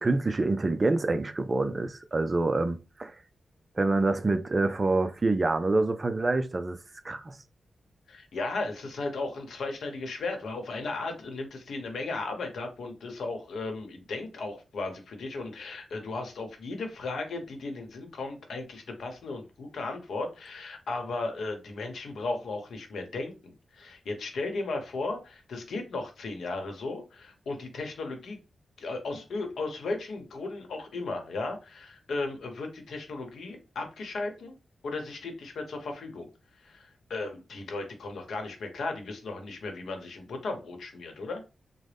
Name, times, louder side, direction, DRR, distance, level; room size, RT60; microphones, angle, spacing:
voice 1, 0.0-3.1 3.8-6.8 7.0-7.4, right 2 dB, 30° right, 0.5 m, -26 dB
voice 2, 8.1-28.4 28.8-34.6 34.8-36.3 36.6-41.4, left 3 dB, 80° left, 0.9 m, -35 dB
3.9 x 2.1 x 3.4 m
wide cardioid pair, 100°, 0 cm